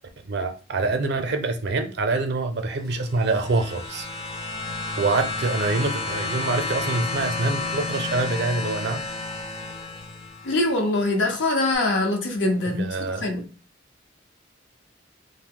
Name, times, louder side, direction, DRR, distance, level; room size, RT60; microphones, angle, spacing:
voice 1, 0.3-4.1 5.0-9.0 12.7-13.3, right 3 dB, 60° right, 0.5 m, -25 dB
sound 1, 2.9-10.7 11.7-11.8, left 3 dB, 30° left, 0.4 m, -31 dB
voice 2, 10.4-12.8 13.2-13.4, left 2 dB, 75° left, 0.7 m, -23 dB
2.7 x 2.0 x 3.6 m
head